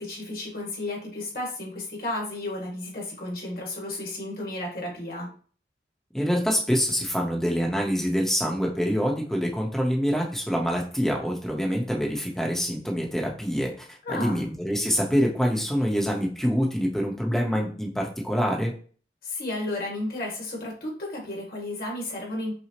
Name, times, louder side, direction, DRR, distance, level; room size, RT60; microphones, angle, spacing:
voice 1, 0.0-5.3 14.0-14.5 19.2-22.5, left 2 dB, 55° left, -1 dB, 1.4 m, -33 dB
voice 2, 6.1-18.7, equal, ahead, -1 dB, 0.7 m, -26 dB
5.8 x 2.0 x 2.9 m, 0.42 s
head